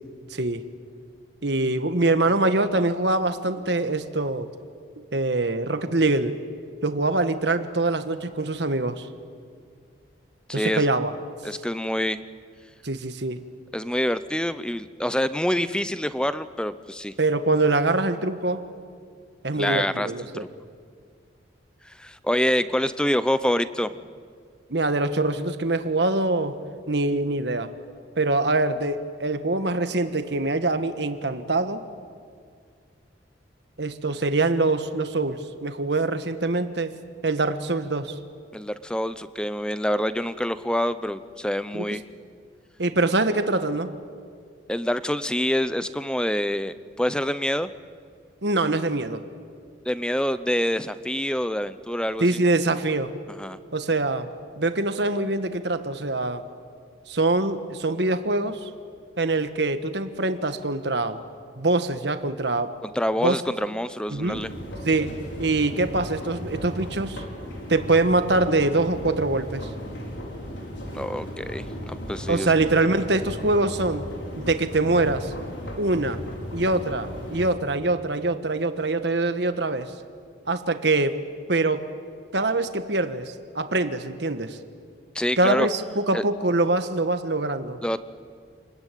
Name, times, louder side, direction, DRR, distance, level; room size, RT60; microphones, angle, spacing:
voice 1, 0.3-0.6 1.4-4.5 5.1-6.4 6.8-9.1 10.5-11.1 12.8-13.4 17.2-18.7 19.4-20.4 24.7-26.6 26.9-27.7 28.2-31.8 33.8-37.0 37.2-38.1 41.7-41.9 42.8-43.9 48.4-49.2 52.2-53.1 53.7-54.3 54.6-56.4 57.1-58.7 59.2-61.2 61.6-62.7 63.2-63.4 64.1-64.4 64.8-67.2 67.7-69.7 72.3-74.1 74.4-75.3 75.8-76.2 76.5-79.9 80.5-81.2 81.5-81.9 82.3-84.6 85.4-87.8, right 2 dB, 65° right, 9 dB, 1.4 m, -24 dB
voice 2, 10.5-10.9 11.4-12.2 13.7-17.1 19.5-20.5 21.8-23.9 38.5-42.0 44.7-47.7 49.8-52.4 53.4-53.6 62.8-64.5 70.9-72.5 85.1-85.7 86.1-86.2 87.8-88.0, equal, 5° left, 13 dB, 0.6 m, -26 dB
sound 1, 64.1-77.5, equal, 75° left, 4.7 m, -36 dB
28.5 x 21.0 x 9.2 m, 2.1 s
head